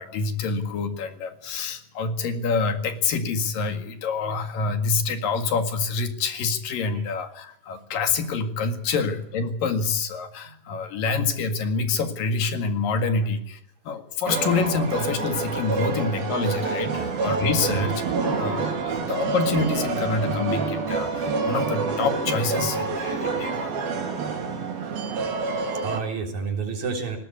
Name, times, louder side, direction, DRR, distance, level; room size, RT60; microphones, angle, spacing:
voice 1, 0.0-13.6 13.9-17.9 18.4-23.7, left 4 dB, 70° left, 8 dB, 3.6 m, -27 dB
sound 1, 14.3-26.0, right 4 dB, 85° right, 5.0 m, -27 dB
voice 2, 23.5-23.9 25.1-25.3 25.8-27.2, right 5 dB, 55° right, 3 dB, 4.9 m, -31 dB
19.0 x 18.5 x 8.5 m, 0.71 s
omnidirectional pair, 4.1 m